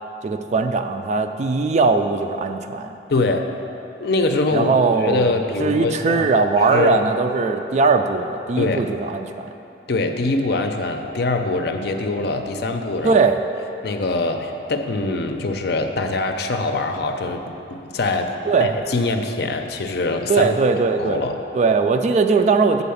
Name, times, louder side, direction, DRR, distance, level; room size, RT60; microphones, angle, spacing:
voice 1, 0.2-2.9 4.5-9.5 13.0-13.4 18.5-18.7 20.3-21.2 21.5-22.8, right 4 dB, 40° right, 7 dB, 0.4 m, -19 dB
voice 2, 3.1-3.5 4.0-4.7 5.0-6.3 6.7-7.1 8.6-8.8 9.9-13.1 13.8-20.6 21.0-21.4, left 3 dB, 65° left, 5 dB, 0.5 m, -23 dB
8.5 x 4.1 x 7.0 m, 2.8 s
head